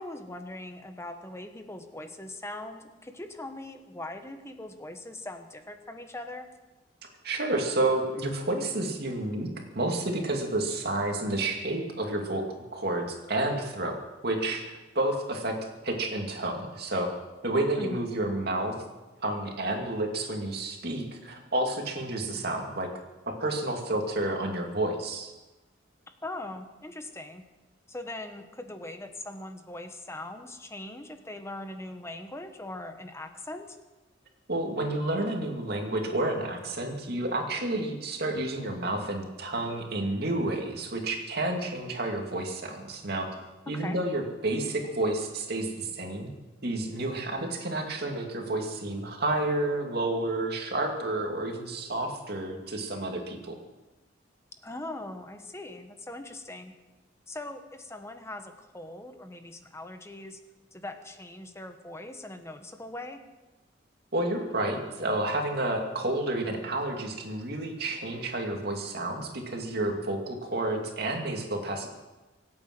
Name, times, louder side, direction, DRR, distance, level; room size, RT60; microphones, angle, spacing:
voice 1, 0.0-6.5 17.8-18.1 26.1-27.4 27.9-33.8 43.7-44.0 54.5-56.7 57.3-60.4 60.7-63.2, left 1 dB, 15° left, 7 dB, 1.2 m, -41 dB
voice 2, 7.2-9.5 9.7-12.5 12.7-14.0 14.2-15.6 15.8-17.1 17.4-18.7 19.2-22.9 23.3-25.3 34.5-43.3 43.7-46.3 46.6-53.6 64.1-71.9, right 2 dB, 60° right, 2 dB, 2.5 m, -30 dB
25.0 x 8.9 x 6.1 m, 1.1 s
head